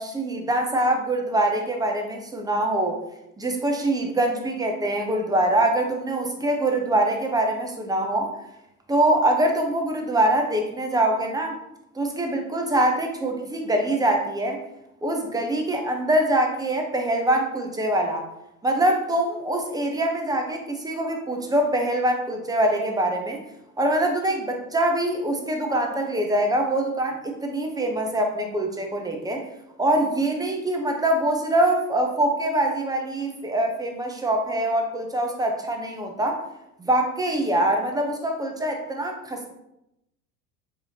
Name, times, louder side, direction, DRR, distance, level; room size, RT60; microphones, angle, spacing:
voice 1, 0.0-3.0 3.4-8.3 8.9-11.6 12.0-14.6 15.0-18.3 18.6-23.4 23.8-29.5 29.8-36.4 36.8-39.5, right 1 dB, 10° right, 3 dB, 0.4 m, -24 dB
4.8 x 2.7 x 2.7 m, 0.85 s
hypercardioid pair, 70°, 44 cm